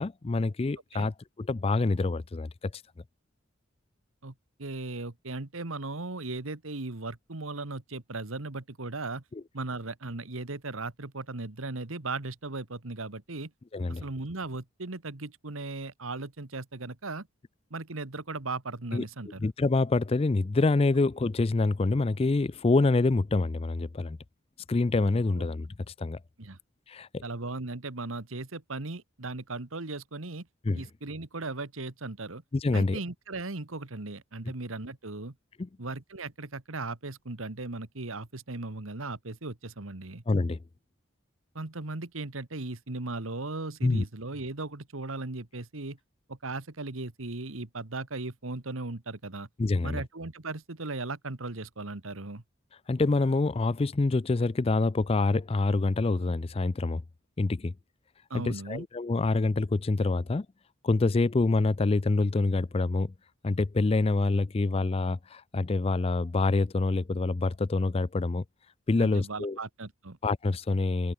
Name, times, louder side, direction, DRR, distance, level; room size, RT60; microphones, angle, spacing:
voice 1, 0.0-2.8 9.3-9.4 13.7-14.0 18.9-19.0 19.4-24.2 24.7-25.7 26.0-26.2 26.9-27.2 30.6-30.8 32.5-33.0 35.6-35.7 40.3-40.6 43.8-44.0 49.6-50.0 52.9-57.0 57.4-57.7 58.3-60.5 60.8-63.1 63.4-68.4 68.9-69.6 70.2-71.1, left 3 dB, 30° left, 0.4 m, -26 dB
voice 2, 4.6-9.2 9.5-13.5 13.9-17.3 17.7-19.4 26.4-26.6 27.2-30.5 30.7-32.4 32.7-35.3 35.8-40.2 41.5-46.0 46.3-49.5 49.8-52.4 58.3-58.9 69.0-70.2, right 3 dB, 85° right, 1.7 m, -37 dB
head